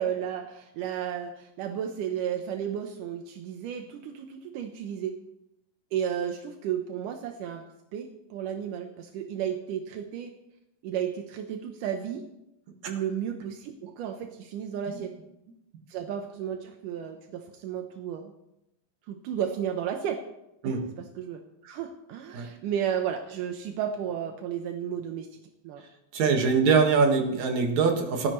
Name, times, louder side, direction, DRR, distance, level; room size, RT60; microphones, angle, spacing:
voice 1, 0.0-5.2 5.9-7.7 7.9-10.3 10.8-12.3 12.9-15.1 15.9-18.3 19.1-20.2 20.6-25.3 25.6-25.8 26.6-26.8, right 9 dB, 75° right, 4 dB, 2.0 m, -33 dB
voice 2, 26.1-28.3, right 5 dB, 55° right, 2 dB, 2.6 m, -23 dB
30.0 x 10.0 x 3.2 m, 0.86 s
omnidirectional pair, 4.7 m